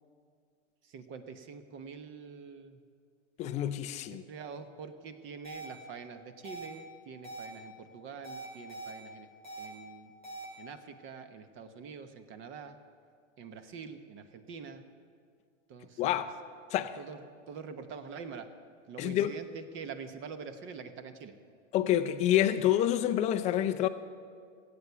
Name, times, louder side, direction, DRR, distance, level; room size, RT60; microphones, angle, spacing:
voice 1, 0.9-2.8 4.1-9.3 9.6-10.1 10.6-12.8 13.4-14.8 15.7-16.2 17.0-17.2 17.5-18.5 18.9-21.3, right 6 dB, 30° right, 1.0 m, -45 dB
voice 2, 3.4-4.2 16.0-16.3 16.7-17.0 19.0-19.3 21.7-23.9, left 12 dB, 20° left, 0.4 m, -28 dB
sound 1, 5.4-5.6 6.4-6.7 7.2-7.4 8.2-8.9 9.4-9.7 10.2-10.4, right 3 dB, 75° right, 4.6 m, -42 dB
16.5 x 8.6 x 6.8 m
hypercardioid pair, 125°, 38 cm